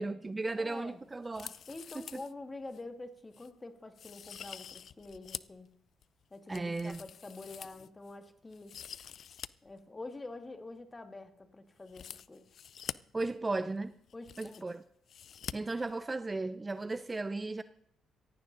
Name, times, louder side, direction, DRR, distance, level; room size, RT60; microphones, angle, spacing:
voice 1, 0.0-1.5 2.1-2.2 6.5-7.0 13.1-13.9 14.4-14.8 15.5-17.6, right 3 dB, 20° right, 0.6 m, -35 dB
voice 2, 0.5-1.0 1.7-5.7 6.3-8.8 9.6-12.5 14.1-14.7, left 2 dB, 20° left, 1.8 m, -47 dB
sound 1, 1.2-2.3 2.7-2.8 3.3-3.5 3.9-5.6 6.0-8.1 8.5-9.5 9.8-9.9 11.8-12.9 13.8-13.9 14.0-14.8 15.1-15.5 15.8-15.9, left 8 dB, 60° left, 0.5 m, -46 dB
16.5 x 14.5 x 3.9 m
cardioid pair, 90°, 0 cm